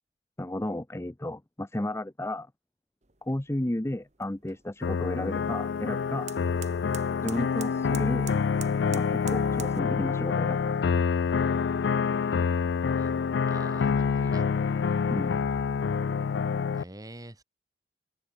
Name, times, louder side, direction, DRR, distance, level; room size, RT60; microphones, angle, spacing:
voice 1, 0.4-2.5 3.2-6.3 7.2-8.4 8.7-10.7 15.1-15.4, left 1 dB, 15° left, 0.7 m, -33 dB
sound 1, 3.0-9.8, right 9 dB, 40° right, 2.1 m, -48 dB
sound 2, 4.8-16.8, left 6 dB, 75° left, 0.4 m, -27 dB
voice 2, 13.4-14.5 16.7-17.4, right 1 dB, 20° right, 1.9 m, -45 dB
head